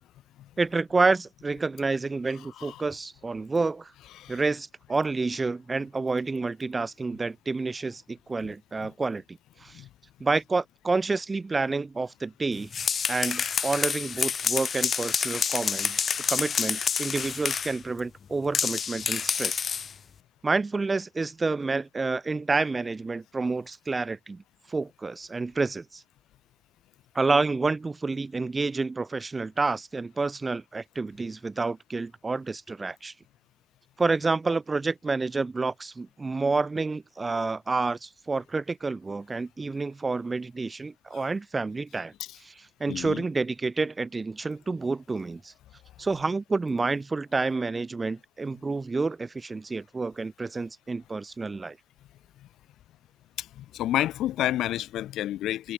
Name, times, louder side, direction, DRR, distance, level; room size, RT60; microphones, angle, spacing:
voice 1, 0.6-3.9 4.3-9.8 10.2-12.7 13.1-16.0 16.3-19.6 20.4-24.4 24.7-26.0 27.1-33.1 34.0-42.1 42.4-45.5 46.0-51.8, right 3 dB, 25° right, 2.2 m, -29 dB
sound 1, 12.6-17.8 18.5-19.9, left 6 dB, 50° left, 1.5 m, -28 dB
voice 2, 42.9-43.2 53.4-55.7, left 13 dB, 80° left, 3.2 m, -30 dB
cardioid pair, 90°, 0 cm